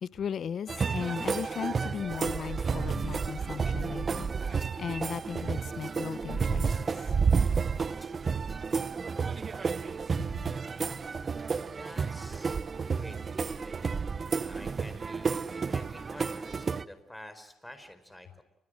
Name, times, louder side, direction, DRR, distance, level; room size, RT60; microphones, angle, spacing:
voice 1, 0.0-7.4 10.2-10.3, left 7 dB, 55° left, 0.8 m, -37 dB
sound 1, 0.7-16.8, right 5 dB, 40° right, 0.9 m, -31 dB
voice 2, 11.6-13.9 14.4-18.4, left 1 dB, 5° left, 4.3 m, -50 dB
29.5 x 23.0 x 6.4 m
cardioid pair, 90°, 0 cm